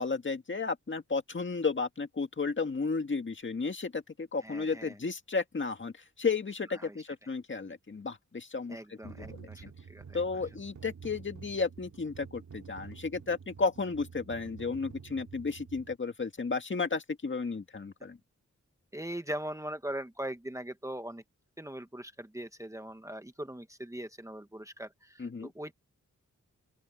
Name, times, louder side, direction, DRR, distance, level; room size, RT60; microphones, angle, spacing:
voice 1, 0.0-9.7 10.1-18.2 25.2-25.5, left 4 dB, 40° left, 1.9 m, -33 dB
voice 2, 4.4-5.0 6.8-7.0 8.7-10.2 18.9-21.2 21.6-25.7, right 1 dB, 10° right, 1.3 m, -40 dB
sound 1, 9.0-16.0, right 6 dB, 80° right, 3.0 m, -49 dB
open air
wide cardioid pair, 110°, 29 cm